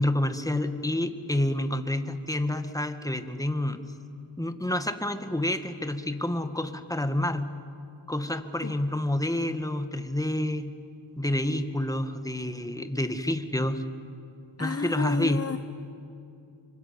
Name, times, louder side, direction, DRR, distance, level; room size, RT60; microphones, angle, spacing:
voice 1, 0.0-3.8 4.4-7.5 8.1-10.7 11.2-13.8 14.6-15.6, left 1 dB, 5° left, 8 dB, 1.8 m, -28 dB
voice 2, 14.6-15.6, left 4 dB, 30° left, 10 dB, 0.9 m, -31 dB
26.5 x 25.0 x 8.8 m, 2.7 s
cardioid pair, 60°, 50 cm